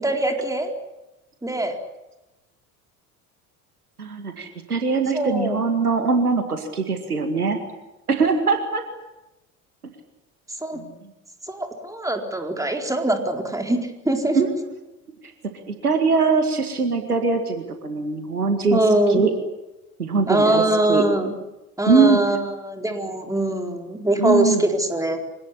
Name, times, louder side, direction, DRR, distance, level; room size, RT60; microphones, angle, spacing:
voice 1, 0.0-0.7 1.4-1.8 5.1-5.6 10.6-10.8 11.4-14.4 18.7-19.3 20.3-21.4 21.8-25.3, right 1 dB, 5° right, 4 dB, 4.2 m, -22 dB
voice 2, 4.0-7.6 8.1-8.8 10.7-10.9 14.3-14.5 15.7-18.8 19.1-19.3 20.0-20.6 20.9-21.0 21.9-22.2 24.2-24.6, right 4 dB, 85° right, 6 dB, 2.1 m, -21 dB
25.5 x 18.0 x 10.0 m, 0.99 s
figure-of-eight pair, 65°, 44 cm